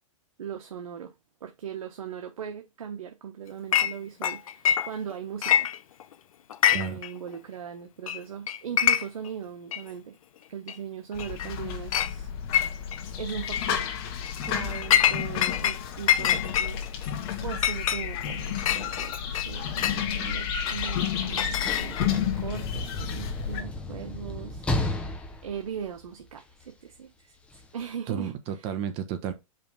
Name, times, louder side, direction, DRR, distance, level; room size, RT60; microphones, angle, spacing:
voice 1, 0.4-1.1 1.4-5.7 6.6-10.2 10.5-12.3 13.2-13.9 14.4-24.6 25.0-27.3 27.7-28.6, right 8 dB, 85° right, 1.0 m, -39 dB
Chink clink, 3.7-3.9 4.2-5.1 5.4-6.1 6.5-7.1 7.3-7.4 8.1-8.2 8.5-9.3 9.7-9.8 10.7-10.8 11.2-11.5 11.9-12.1 12.5-13.0 13.4-13.7 14.2-15.8 16.1-20.0 20.7-22.2, left 10 dB, 80° left, 0.6 m, -25 dB
voice 2, 6.7-7.0 28.1-29.3, right 8 dB, 30° right, 1.0 m, -32 dB
sound 1, 11.1-23.6, left 9 dB, 45° left, 1.4 m, -32 dB
Sliding door / Slam, 21.3-26.6 27.5-27.7, left 1 dB, 5° left, 0.7 m, -33 dB
5.1 x 3.4 x 5.6 m
hypercardioid pair, 150°, 18 cm